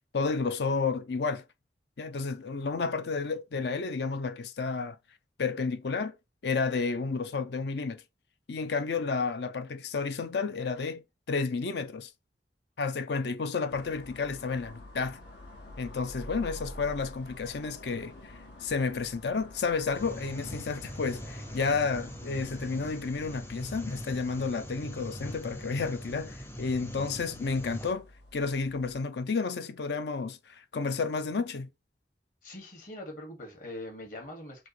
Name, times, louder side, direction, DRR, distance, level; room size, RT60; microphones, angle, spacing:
voice 1, 0.1-1.4 2.0-5.0 5.4-6.1 6.4-8.0 8.5-12.1 12.8-15.2 15.8-18.1 18.6-28.1 28.3-31.7, left 4 dB, 70° left, 0.5 m, -31 dB
sound 1, 13.7-29.0, left 1 dB, 85° left, 1.5 m, -49 dB
sound 2, 19.9-27.9, equal, 15° left, 0.6 m, -42 dB
voice 2, 32.4-34.7, left 1 dB, 50° left, 1.9 m, -42 dB
6.0 x 2.6 x 3.1 m
head